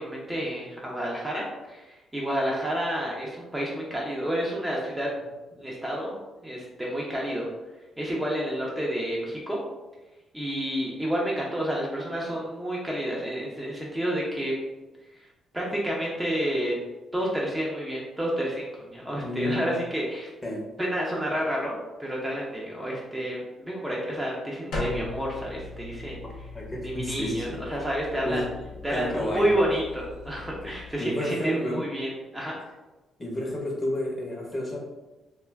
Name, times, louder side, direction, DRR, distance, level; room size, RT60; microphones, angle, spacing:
voice 1, 0.0-5.1 5.6-6.2 6.4-7.5 8.0-9.6 10.3-14.5 15.1-15.3 15.5-16.8 17.1-20.3 20.8-26.2 26.8-28.4 28.8-32.6, equal, 10° right, -4 dB, 0.6 m, -30 dB
voice 2, 19.2-19.7 20.4-20.6 26.5-27.6 28.2-28.4 28.9-29.5 31.0-31.8 33.2-34.8, left 1 dB, 25° left, -2 dB, 0.8 m, -30 dB
sound 1, 24.7-30.9, left 2 dB, 75° left, 0.9 m, -39 dB
2.3 x 2.3 x 3.2 m, 1.1 s
cardioid pair, 90°, 0 cm